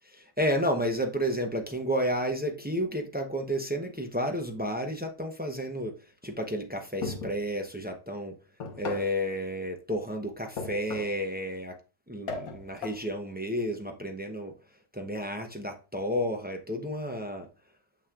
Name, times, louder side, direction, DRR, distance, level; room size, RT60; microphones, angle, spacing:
voice 1, 0.1-6.0 6.2-8.3 8.8-11.7 12.1-14.5 14.9-17.5, equal, 15° right, 0.4 m, -31 dB
sound 1, 7.0-7.5 8.6-9.2 10.6-11.2 12.3-13.0, left 4 dB, 70° left, 1.6 m, -37 dB
6.8 x 6.2 x 2.4 m
omnidirectional pair, 1.6 m